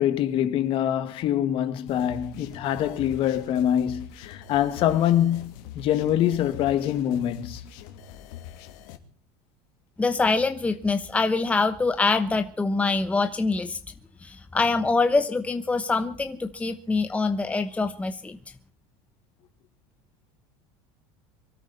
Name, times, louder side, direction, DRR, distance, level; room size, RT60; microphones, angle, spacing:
voice 1, 0.0-7.6, left 11 dB, 50° left, 2.0 m, -24 dB
sound 1, 1.9-9.0, left 10 dB, 75° left, 2.6 m, -43 dB
voice 2, 10.0-13.8 14.2-18.4, left 3 dB, 10° left, 1.0 m, -24 dB
24.0 x 13.0 x 4.1 m
supercardioid pair, 130°, 12 cm